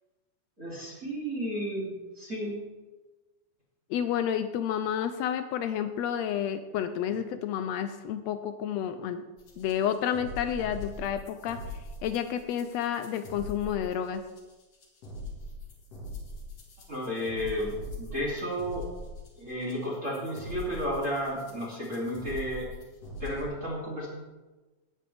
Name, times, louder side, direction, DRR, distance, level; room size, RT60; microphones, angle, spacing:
voice 1, 0.6-2.6 16.9-18.8 19.4-22.7 23.2-24.1, equal, 25° right, -7 dB, 3.0 m, -33 dB
voice 2, 3.9-9.2 9.6-11.6 12.0-14.2, left 9 dB, 85° left, 9 dB, 1.5 m, -30 dB
sound 1, 9.4-23.4, left 1 dB, 55° left, 2.9 m, -42 dB
17.0 x 8.5 x 3.4 m, 1.2 s
omnidirectional pair, 3.6 m